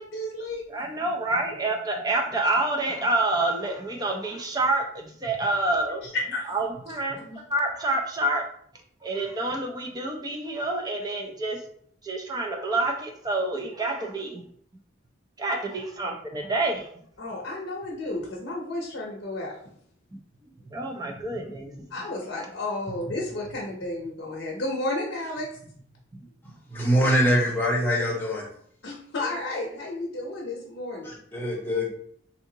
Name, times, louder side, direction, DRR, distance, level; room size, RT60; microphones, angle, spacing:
voice 1, 0.0-0.6 6.0-6.6 7.2-7.4 17.2-19.6 21.9-25.5 28.8-31.1, left 2 dB, 60° left, -2 dB, 0.7 m, -32 dB
voice 2, 0.7-6.1 6.5-7.2 7.5-8.4 9.0-11.6 12.0-14.4 15.4-16.9 20.7-21.8, right 2 dB, 20° right, 2 dB, 0.4 m, -27 dB
voice 3, 26.7-28.5 31.0-31.9, equal, 10° left, -3 dB, 0.8 m, -23 dB
3.5 x 2.8 x 2.7 m, 0.63 s
head